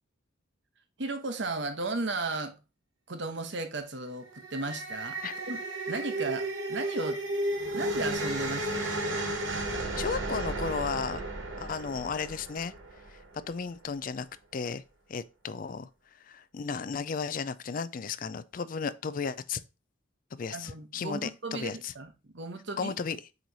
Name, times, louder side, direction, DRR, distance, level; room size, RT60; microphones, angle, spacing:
voice 1, 1.0-2.6 3.1-5.2 5.5-5.6 5.9-7.2 7.7-8.9 20.5-22.9, right 3 dB, 60° right, 1.0 m, -35 dB
sound 1, 4.2-13.5, right 1 dB, 80° right, 1.8 m, -33 dB
voice 2, 10.0-11.2 11.6-12.7 13.1-13.2 13.5-14.3 14.5-14.8 15.1-19.6 20.3-21.9 22.8-23.2, left 5 dB, 45° left, 0.4 m, -34 dB
8.0 x 3.2 x 4.0 m
head